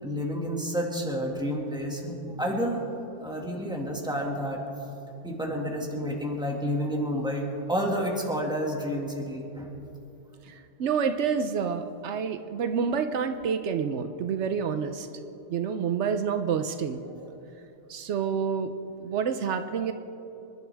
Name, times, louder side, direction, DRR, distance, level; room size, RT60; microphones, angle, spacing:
voice 1, 0.0-4.6 5.2-9.7, equal, 5° right, -1 dB, 1.9 m, -30 dB
voice 2, 10.4-15.1 15.5-17.0 17.9-18.7 19.0-19.9, right 6 dB, 80° right, 8 dB, 1.0 m, -28 dB
26.5 x 11.5 x 3.4 m, 2.9 s
omnidirectional pair, 1.2 m